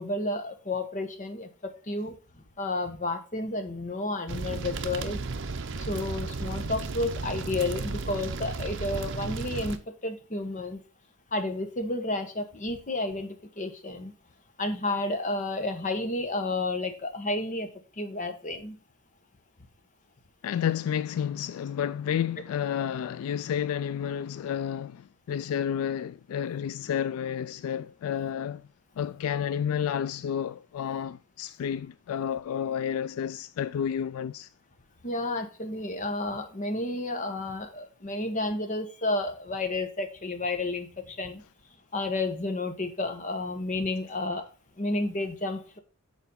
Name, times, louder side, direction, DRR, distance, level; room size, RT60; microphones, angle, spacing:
voice 1, 0.0-5.2 5.8-10.8 11.3-14.1 14.6-17.7 18.0-18.8 35.0-41.4 41.9-44.5 44.8-45.8, left 2 dB, 35° left, 1.1 m, -31 dB
sound 1, 4.3-9.8, right 3 dB, 60° right, 0.7 m, -34 dB
voice 2, 20.4-28.7 29.0-34.5, left 8 dB, 80° left, 0.3 m, -31 dB
6.9 x 4.5 x 5.4 m
head